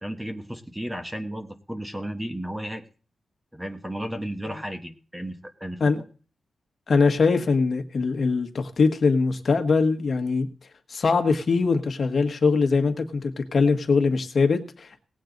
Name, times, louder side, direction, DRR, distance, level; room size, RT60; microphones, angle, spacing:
voice 1, 0.0-2.8 3.5-6.0, equal, 5° right, 5 dB, 1.2 m, -34 dB
voice 2, 6.9-10.5 10.9-15.0, left 4 dB, 50° left, 5 dB, 1.5 m, -22 dB
18.5 x 8.5 x 4.0 m, 0.39 s
wide cardioid pair, 140°, 0 cm